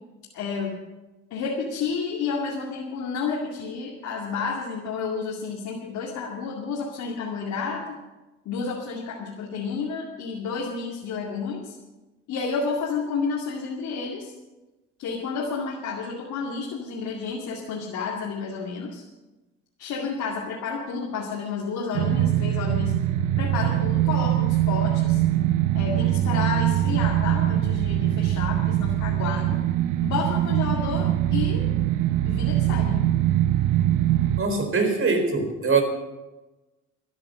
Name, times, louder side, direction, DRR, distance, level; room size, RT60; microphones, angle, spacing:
voice 1, 0.3-0.8 1.3-8.0 8.5-11.8 12.3-14.3 15.0-19.0 19.8-23.0 23.4-25.2 25.7-29.6 30.0-31.7 32.2-33.1, left 5 dB, 85° left, -3 dB, 2.4 m, -30 dB
sound 1, 21.9-34.4, right 13 dB, 90° right, 0.7 m, -23 dB
voice 2, 34.4-35.8, right 4 dB, 45° right, 4 dB, 4.2 m, -22 dB
13.5 x 10.5 x 7.6 m, 1.1 s
cardioid pair, 90°, 30 cm